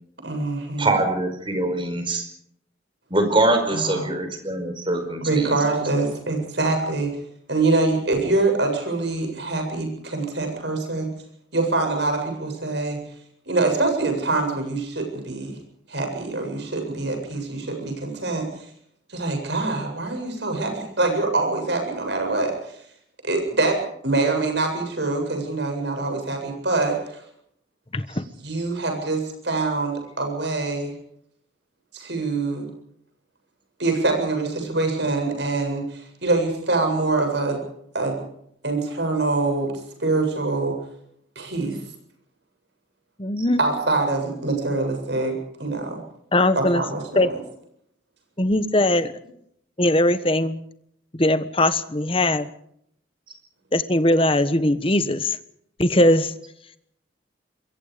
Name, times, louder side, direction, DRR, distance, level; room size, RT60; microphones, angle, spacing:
voice 1, 0.2-0.9 3.7-4.1 5.2-7.1 7.5-11.1 11.5-13.0 13.5-15.6 15.9-18.5 19.1-22.8 23.2-23.8 24.0-27.2 28.4-30.9 31.9-32.7 33.8-37.6 37.9-38.2 38.6-39.7 40.0-40.8 41.4-41.8 43.6-46.0 46.5-47.4, right 3 dB, 60° right, 4 dB, 7.9 m, -24 dB
voice 2, 0.8-2.2 3.1-5.5 43.4-43.5, right 2 dB, 25° right, 7 dB, 4.8 m, -23 dB
voice 3, 27.9-28.2 43.2-43.6 46.3-46.8 47.1-47.3 48.4-49.1 49.8-50.6 51.1-52.5 53.7-55.4 55.8-56.3, left 1 dB, 30° left, 12 dB, 1.3 m, -20 dB
26.5 x 22.5 x 5.2 m, 0.71 s
head